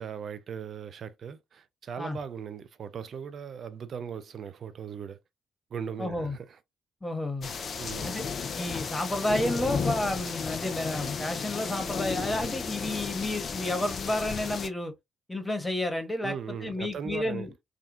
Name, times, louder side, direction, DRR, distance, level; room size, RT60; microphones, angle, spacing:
voice 1, 0.0-5.2 5.7-6.6 7.8-8.2 16.2-17.5, right 7 dB, 50° right, 0.4 m, -38 dB
voice 2, 6.0-6.4 7.0-7.5 8.0-8.2 8.5-14.9 15.3-16.3 16.6-17.5, left 1 dB, 15° left, 1.2 m, -31 dB
sound 1, 7.4-14.7, left 5 dB, 50° left, 0.5 m, -33 dB
3.6 x 2.3 x 2.6 m
figure-of-eight pair, 40°, 0 cm